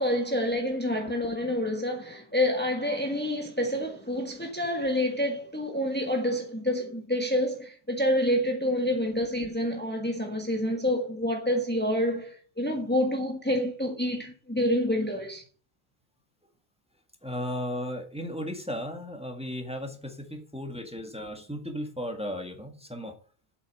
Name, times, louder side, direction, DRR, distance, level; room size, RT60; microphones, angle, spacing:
voice 1, 0.0-15.4, left 1 dB, 10° left, 1.6 m, -28 dB
voice 2, 17.2-23.1, equal, 5° right, 1.8 m, -35 dB
8.2 x 8.1 x 6.6 m
omnidirectional pair, 1.0 m